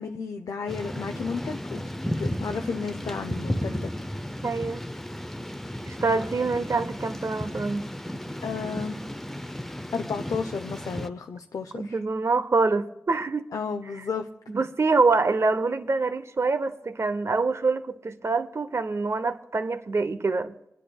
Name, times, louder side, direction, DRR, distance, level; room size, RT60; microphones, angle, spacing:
voice 1, 0.0-1.8 2.2-3.9 8.4-9.0 9.9-12.0 13.5-14.3, left 5 dB, 85° left, 0.5 m, -32 dB
Thunder / Rain, 0.7-11.1, left 1 dB, 5° left, 0.5 m, -34 dB
voice 2, 4.4-4.8 5.9-7.8 11.7-13.5 14.5-20.5, right 3 dB, 50° right, 0.6 m, -25 dB
28.5 x 9.9 x 2.2 m
wide cardioid pair, 75°, 6 cm